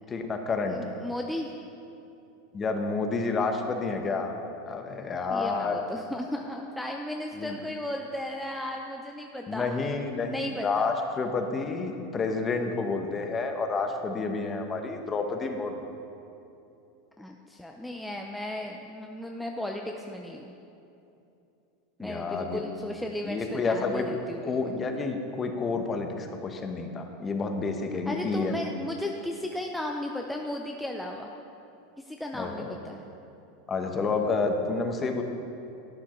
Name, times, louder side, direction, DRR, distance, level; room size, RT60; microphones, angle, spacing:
voice 1, 0.1-0.8 2.5-4.3 4.7-5.7 7.3-7.6 9.5-10.3 10.6-15.7 22.0-22.6 23.2-24.1 24.4-28.6 32.3-32.7 33.7-35.2, left 4 dB, 25° left, 5 dB, 0.9 m, -29 dB
voice 2, 0.7-1.5 5.3-9.9 10.3-10.9 17.2-20.6 22.0-24.8 28.1-31.3 32.0-33.0, left 1 dB, 5° left, 1 dB, 0.5 m, -35 dB
11.5 x 9.4 x 3.1 m, 2.8 s
supercardioid pair, 125°, 0 cm